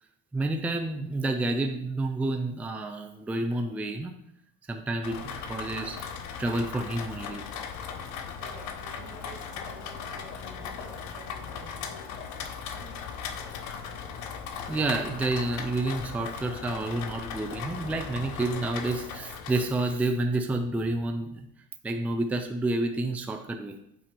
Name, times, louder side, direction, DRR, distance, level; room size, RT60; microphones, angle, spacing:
voice 1, 0.3-4.1 4.7-6.0 6.4-7.4 14.7-21.5 21.8-23.7, right 2 dB, 5° right, 4 dB, 0.4 m, -29 dB
Rain, 5.0-20.0, left 6 dB, 70° left, 0.7 m, -38 dB
voice 2, 8.4-13.1, right 3 dB, 85° right, -1 dB, 1.8 m, -50 dB
8.6 x 3.3 x 4.3 m, 0.76 s
cardioid pair, 145°, 31 cm